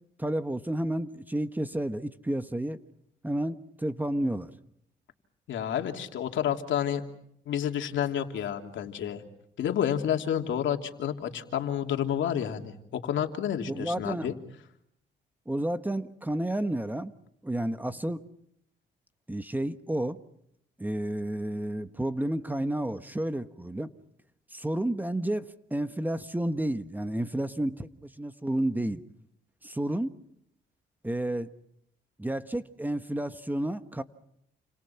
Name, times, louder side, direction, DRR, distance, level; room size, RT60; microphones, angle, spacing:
voice 1, 0.2-2.8 3.2-4.5 13.7-14.4 15.5-17.1 17.4-18.2 19.3-20.2 20.8-23.9 24.5-29.0 29.6-30.2 31.0-31.5 32.2-34.0, right 1 dB, 10° right, 10 dB, 1.3 m, -31 dB
voice 2, 5.5-7.0 7.5-9.2 9.6-14.3, left 9 dB, 75° left, 4 dB, 3.0 m, -30 dB
29.5 x 27.0 x 5.9 m, 0.75 s
cardioid pair, 90°, 20 cm